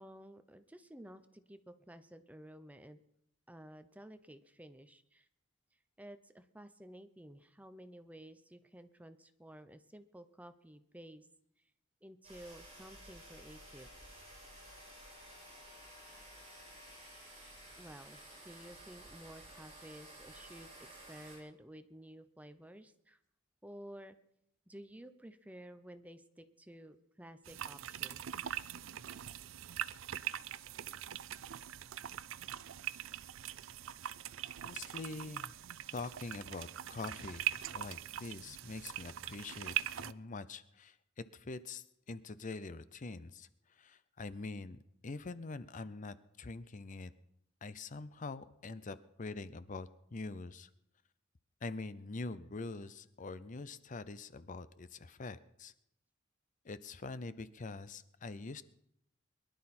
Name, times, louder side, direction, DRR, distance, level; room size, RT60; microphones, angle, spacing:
voice 1, 0.0-3.0 3.5-5.3 6.0-11.3 12.0-13.9 17.8-23.2 23.6-24.2 24.7-28.2, equal, 10° right, 11 dB, 0.7 m, -53 dB
sound 1, 12.2-21.4, right 1 dB, 30° right, 8.0 m, -54 dB
sound 2, 27.5-40.1, right 11 dB, 90° right, 0.5 m, -42 dB
voice 2, 34.6-35.5 35.9-41.0 41.3-47.1 47.6-50.7 51.6-55.7 56.6-58.6, left 3 dB, 40° left, 14 dB, 0.6 m, -44 dB
22.5 x 12.0 x 4.3 m, 0.77 s
head